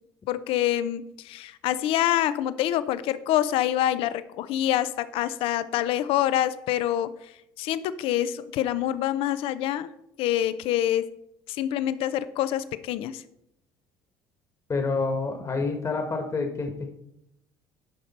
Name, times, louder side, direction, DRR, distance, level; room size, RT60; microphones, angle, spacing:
voice 1, 0.3-7.1 7.6-9.9 10.2-11.1 11.5-13.2, left 12 dB, 70° left, 15 dB, 0.5 m, -26 dB
voice 2, 14.7-16.9, left 3 dB, 30° left, 4 dB, 1.3 m, -28 dB
11.0 x 5.1 x 4.2 m, 0.80 s
supercardioid pair, 80°, 10 cm